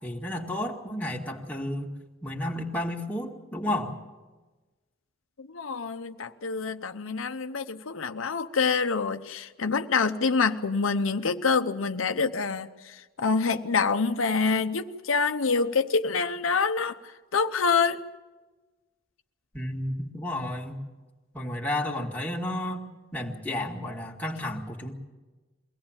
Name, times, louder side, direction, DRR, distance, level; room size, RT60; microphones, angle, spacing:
voice 1, 0.0-1.9 2.2-4.0 19.5-20.8 21.3-22.8 23.1-24.9, left 1 dB, 10° left, -1 dB, 2.0 m, -32 dB
voice 2, 5.4-18.0, left 4 dB, 85° left, 8 dB, 0.8 m, -26 dB
23.0 x 17.0 x 8.9 m, 1.2 s
head